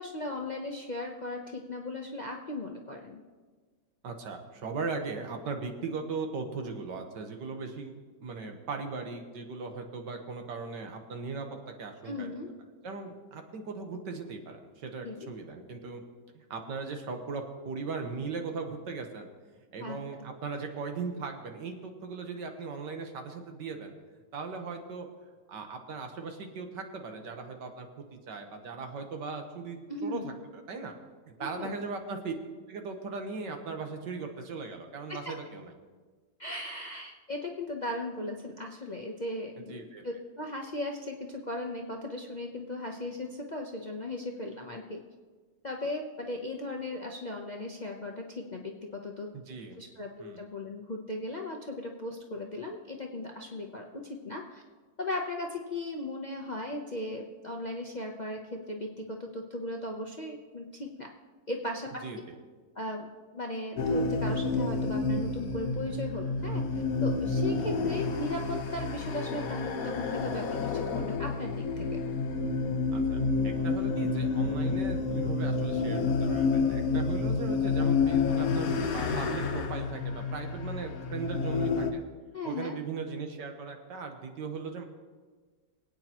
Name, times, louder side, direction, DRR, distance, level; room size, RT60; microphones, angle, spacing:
voice 1, 0.0-3.2 12.0-12.5 15.0-15.2 19.8-20.0 29.9-30.3 31.4-31.7 35.1-35.4 36.4-45.0 45.6-49.3 49.8-54.6 55.0-61.1 61.5-62.0 62.7-63.1 63.3-72.1 76.8-77.1 82.3-82.7, left 2 dB, 40° left, 1 dB, 0.6 m, -37 dB
voice 2, 4.0-7.9 8.2-12.3 12.8-16.0 16.3-19.3 19.7-23.9 24.3-25.1 25.5-30.3 30.7-30.9 31.3-32.4 32.7-35.7 39.7-40.0 49.3-49.8 50.2-50.4 62.0-62.2 72.9-73.2 73.6-82.0 82.4-84.8, right 4 dB, 85° right, 4 dB, 1.9 m, -38 dB
sound 1, 63.8-81.9, left 4 dB, 60° left, 1.3 m, -29 dB
23.0 x 8.8 x 3.0 m, 1.4 s
omnidirectional pair, 1.9 m